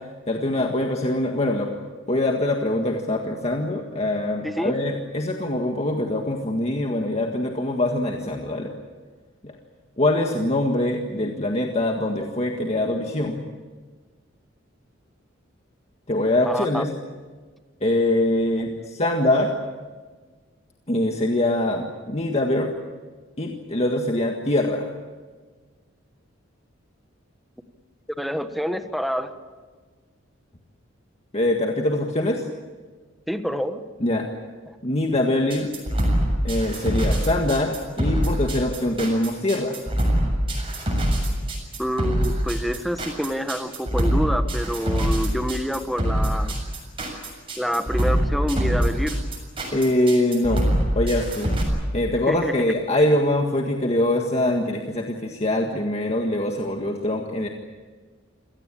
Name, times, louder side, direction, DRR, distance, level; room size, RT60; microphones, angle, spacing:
voice 1, 0.3-1.7 2.1-8.7 9.4-9.5 10.0-13.4 16.1-16.9 17.8-19.5 20.9-22.7 23.4-24.9 31.3-32.4 34.0-34.3 34.8-35.7 36.4-39.8 49.7-50.6 50.9-51.5 51.9-57.5, left 1 dB, 35° left, 2 dB, 1.8 m, -23 dB
voice 2, 4.4-4.7 16.4-16.8 18.6-18.7 28.2-29.3 33.3-33.8 41.8-46.5 47.6-49.1 52.3-52.7, equal, ahead, 8 dB, 1.4 m, -27 dB
sound 1, 35.5-51.6, equal, 25° right, 7.2 m, -23 dB
27.5 x 17.5 x 8.7 m, 1.4 s
head